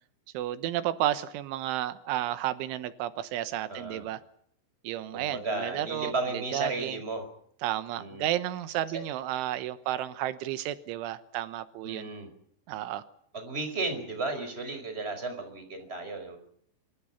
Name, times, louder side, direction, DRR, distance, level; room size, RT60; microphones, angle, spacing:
voice 1, 0.3-4.2 4.8-7.0 7.6-12.1 12.7-13.0, right 13 dB, 85° right, 13 dB, 3.6 m, -32 dB
voice 2, 3.7-4.0 5.1-7.2 8.0-8.3 11.8-12.3 13.3-16.4, right 3 dB, 15° right, 7 dB, 4.8 m, -34 dB
25.0 x 25.0 x 5.8 m, 0.67 s
omnidirectional pair, 5.4 m